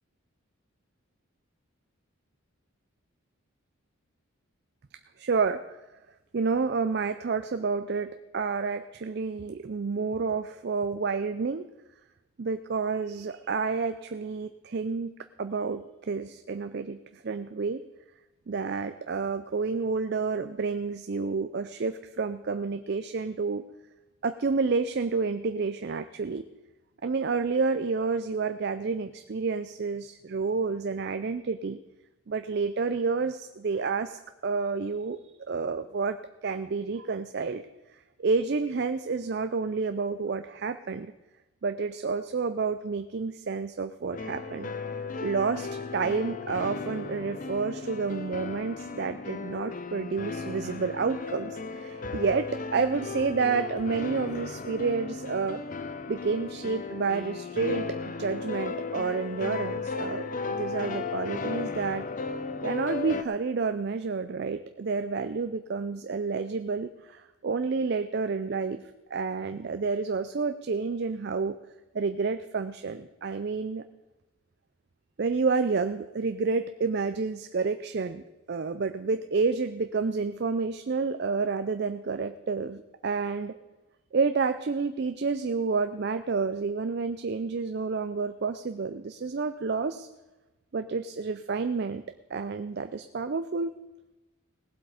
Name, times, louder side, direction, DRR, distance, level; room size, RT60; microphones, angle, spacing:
voice 1, 5.2-5.8 6.3-11.6 12.4-15.1 15.4-17.8 18.5-23.6 24.2-26.4 27.0-31.8 32.3-37.6 38.2-41.1 41.6-44.7 45.2-55.6 56.1-62.1 62.6-71.6 71.9-73.8 75.2-83.5 84.1-90.1 90.7-92.0 92.3-93.7, right 4 dB, 50° right, 10 dB, 0.4 m, -29 dB
sound 1, 44.1-63.2, left 4 dB, 40° left, 0.6 m, -35 dB
18.0 x 7.9 x 4.9 m, 1.1 s
head